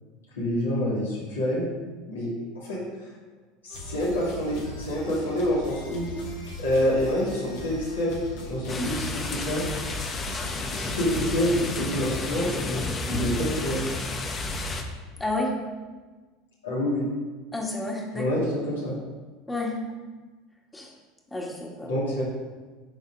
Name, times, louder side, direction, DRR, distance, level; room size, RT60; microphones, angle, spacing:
voice 1, 0.3-1.6 2.1-2.3 2.6-2.8 3.6-6.1 6.6-9.1 9.3-9.6 10.8-12.5 13.1-13.9 16.6-17.1 18.1-18.9 21.9-22.2, equal, 85° left, -7 dB, 2.8 m, -27 dB
sound 1, 3.7-12.4, left 2 dB, 70° left, 2.0 m, -39 dB
sound 2, 8.7-14.8, left 3 dB, 30° left, 1.1 m, -31 dB
voice 2, 15.2-15.5 17.5-18.3 19.5-19.8 20.7-20.9 21.3-21.9, left 2 dB, 15° left, -1 dB, 2.0 m, -30 dB
11.5 x 4.1 x 4.9 m, 1.3 s
hypercardioid pair, 80°, 0 cm